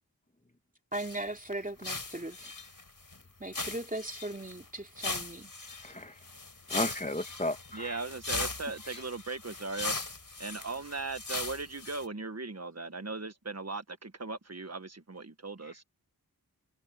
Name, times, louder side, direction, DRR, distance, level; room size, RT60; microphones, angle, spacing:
sound 1, 0.9-1.2 1.5-1.6 1.8-3.2 3.5-4.7 5.0-12.1, left 3 dB, 60° left, 5.0 m, -39 dB
voice 1, 0.9-2.5 3.4-5.5, right 1 dB, 20° right, 2.9 m, -38 dB
voice 2, 5.8-6.1 6.7-8.0, left 1 dB, 20° left, 1.8 m, -34 dB
voice 3, 7.7-9.9 10.4-15.8, right 3 dB, 45° right, 1.6 m, -38 dB
wide cardioid pair, 55°, 37 cm